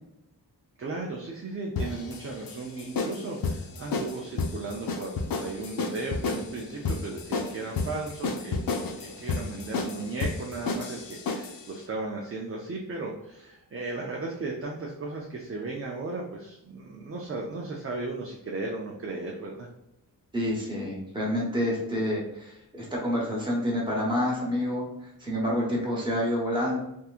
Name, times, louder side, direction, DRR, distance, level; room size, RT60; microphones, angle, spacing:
voice 1, 0.8-19.7, right 3 dB, 35° right, -1 dB, 0.4 m, -36 dB
sound 1, 1.8-11.6, left 4 dB, 65° left, 0.5 m, -31 dB
voice 2, 20.3-24.8 25.2-26.8, equal, 10° right, -4 dB, 1.1 m, -28 dB
3.5 x 2.9 x 2.4 m, 0.86 s
wide cardioid pair, 150°, 38 cm